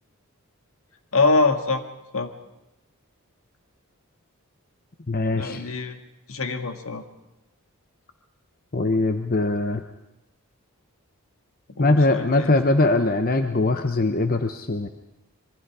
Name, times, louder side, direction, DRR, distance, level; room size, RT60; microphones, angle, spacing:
voice 1, 1.1-1.8 2.1-2.3 5.3-6.0 6.3-7.0 11.8-12.5, left 3 dB, 70° left, 6 dB, 1.8 m, -24 dB
voice 2, 5.1-5.6 8.7-9.8 11.8-14.9, left 2 dB, 40° left, 7 dB, 0.8 m, -21 dB
25.5 x 23.0 x 4.8 m, 0.89 s
head